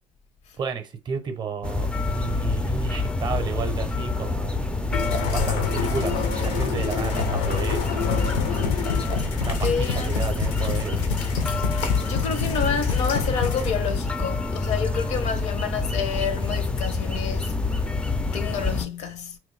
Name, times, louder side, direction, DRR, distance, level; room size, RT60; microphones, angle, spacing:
voice 1, 0.6-4.7 5.3-8.2 9.4-11.0, right 6 dB, 35° right, 0.6 m, -32 dB
sound 1, 1.6-18.9, left 3 dB, 10° left, 0.3 m, -27 dB
sound 2, 4.9-13.7, left 7 dB, 90° left, 0.7 m, -28 dB
voice 2, 9.6-10.1 12.1-17.5 18.3-19.4, left 6 dB, 60° left, 0.6 m, -29 dB
3.0 x 2.2 x 3.2 m
cardioid pair, 130°, 13 cm